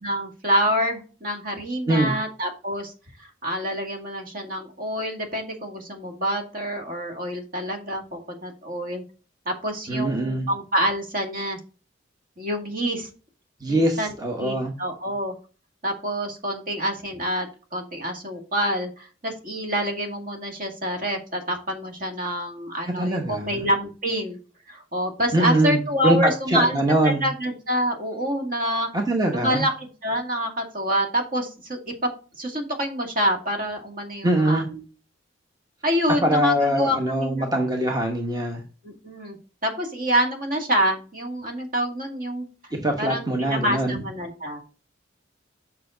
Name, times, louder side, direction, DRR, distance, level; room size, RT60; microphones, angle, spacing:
voice 1, 0.0-2.9 3.2-9.0 9.5-11.6 12.4-13.1 13.7-15.3 15.8-17.5 17.7-24.4 24.7-28.9 29.3-32.1 32.4-34.8 35.8-37.6 38.8-39.4 39.6-42.7 43.0-44.6, equal, 45° right, 3 dB, 2.2 m, -27 dB
voice 2, 9.9-10.5 13.6-14.7 23.0-23.4 25.3-27.3 28.9-29.7 34.2-34.7 36.2-38.6 42.7-44.0, right 1 dB, 20° right, 3 dB, 1.0 m, -23 dB
7.6 x 5.9 x 3.8 m, 0.35 s
head